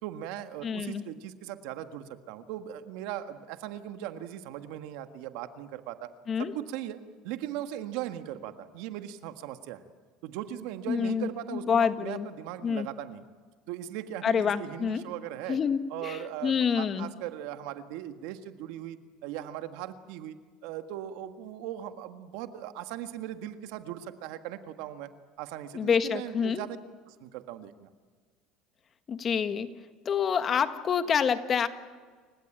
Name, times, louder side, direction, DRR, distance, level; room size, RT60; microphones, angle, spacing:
voice 1, 0.0-6.1 6.4-9.8 10.2-13.2 13.7-15.6 15.9-19.0 19.2-25.1 25.4-26.8 27.1-27.9, right 11 dB, 75° right, 8 dB, 1.6 m, -39 dB
voice 2, 0.6-1.0 6.3-6.5 10.9-12.3 12.6-12.9 14.2-15.0 15.5-17.1 25.7-26.6 29.1-29.7 30.0-31.7, left 7 dB, 40° left, 10 dB, 1.6 m, -27 dB
28.5 x 16.0 x 9.0 m, 1.5 s
supercardioid pair, 105°, 0 cm